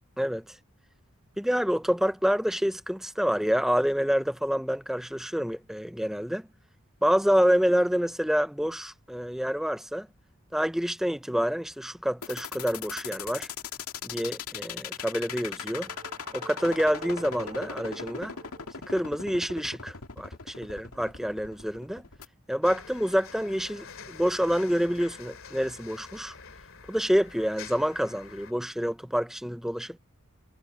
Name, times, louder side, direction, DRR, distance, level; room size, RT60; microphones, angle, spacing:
voice 1, 0.2-0.6 1.4-6.4 7.0-10.1 10.5-13.5 14.0-15.9 16.3-18.4 18.9-22.0 22.5-26.3 26.9-30.0, equal, ahead, 0.6 m, -27 dB
sound 1, 12.2-22.2, left 6 dB, 90° left, 2.2 m, -39 dB
sound 2, 14.9-19.2, right 3 dB, 25° right, 1.1 m, -48 dB
sound 3, 22.6-28.5, left 6 dB, 70° left, 2.4 m, -46 dB
head